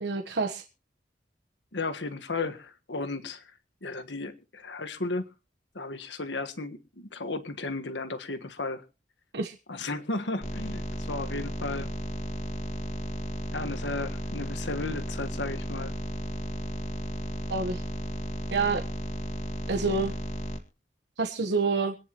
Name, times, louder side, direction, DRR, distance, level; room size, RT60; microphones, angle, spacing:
voice 1, 0.0-0.6 9.3-9.5 17.5-17.8 18.5-18.8 19.7-20.1 21.2-22.0, right 4 dB, 70° right, 4 dB, 1.2 m, -27 dB
voice 2, 1.7-3.4 3.8-5.3 5.7-8.8 9.7-11.9 13.5-15.9, left 3 dB, 75° left, 8 dB, 1.5 m, -34 dB
sound 1, 10.4-20.6, equal, 40° left, 2.0 m, -34 dB
26.0 x 9.8 x 3.0 m, 0.33 s
head